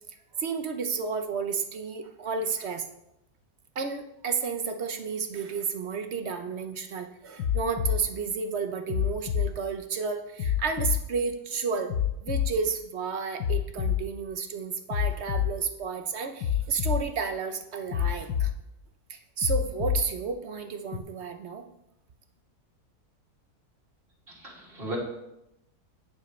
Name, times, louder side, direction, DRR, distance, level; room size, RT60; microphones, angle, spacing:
voice 1, 0.4-2.9 3.8-11.9 12.2-18.5 19.1-21.7, right 5 dB, 50° right, 7 dB, 0.9 m, -32 dB
sound 1, 7.4-8.0 8.9-9.5 10.4-11.0 11.9-12.5 13.4-14.0 14.9-15.5 16.4-17.0 17.9-18.5 19.4-20.0 20.9-21.0, left 10 dB, 85° left, 1.4 m, -26 dB
voice 2, 24.3-25.0, right 1 dB, 35° right, -3 dB, 2.7 m, -37 dB
17.0 x 6.7 x 3.2 m, 0.86 s
omnidirectional pair, 1.7 m